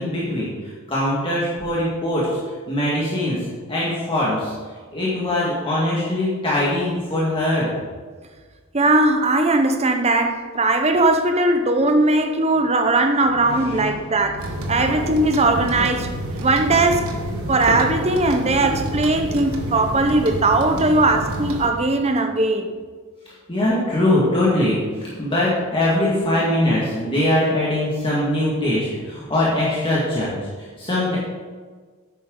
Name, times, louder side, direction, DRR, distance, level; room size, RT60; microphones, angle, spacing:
voice 1, 0.0-2.4 2.7-3.4 3.7-4.5 4.9-7.7 13.4-14.6 23.5-31.2, left 1 dB, 25° left, -7 dB, 1.9 m, -22 dB
voice 2, 8.7-16.1 16.4-17.2 17.5-22.7, right 2 dB, 30° right, 6 dB, 0.9 m, -19 dB
sound 1, 14.4-21.7, right 1 dB, 90° right, 1.4 m, -28 dB
10.0 x 8.6 x 3.9 m, 1.5 s
head